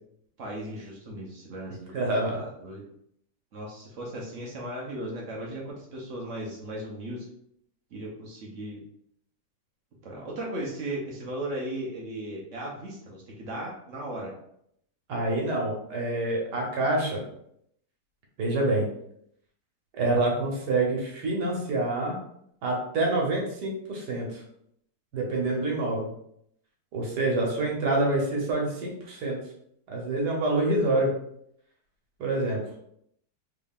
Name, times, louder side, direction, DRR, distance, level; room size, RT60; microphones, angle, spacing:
voice 1, 0.4-2.8 3.5-7.3 7.9-8.8 10.0-14.3, right 1 dB, 55° right, -2 dB, 1.0 m, -37 dB
voice 2, 1.9-2.4 15.1-17.2 18.4-18.9 19.9-22.2 22.6-24.4 25.1-26.1 26.9-29.4 29.9-31.1 32.2-32.6, right 2 dB, 80° right, -1 dB, 1.5 m, -26 dB
3.6 x 3.6 x 2.3 m, 0.72 s
omnidirectional pair, 1.8 m